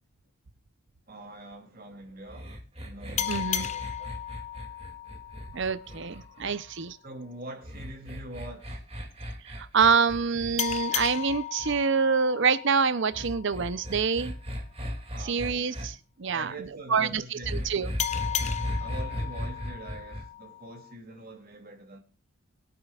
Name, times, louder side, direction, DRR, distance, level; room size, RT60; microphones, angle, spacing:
voice 1, 1.1-4.2 6.3-6.5 7.0-8.8 15.1-15.5 16.2-17.7 18.8-22.0, right 1 dB, 45° right, 2.8 m, -44 dB
sound 1, 2.3-6.7 7.6-11.8 13.1-15.9 17.4-20.2, equal, 30° right, 2.5 m, -36 dB
sound 2, 3.2-6.4 10.6-13.8 18.0-20.9, left 10 dB, 30° left, 0.5 m, -35 dB
voice 2, 3.3-3.7 5.5-7.0 9.4-14.4 15.2-16.5 16.9-17.9, right 5 dB, 60° right, 0.6 m, -26 dB
23.0 x 8.7 x 2.4 m
head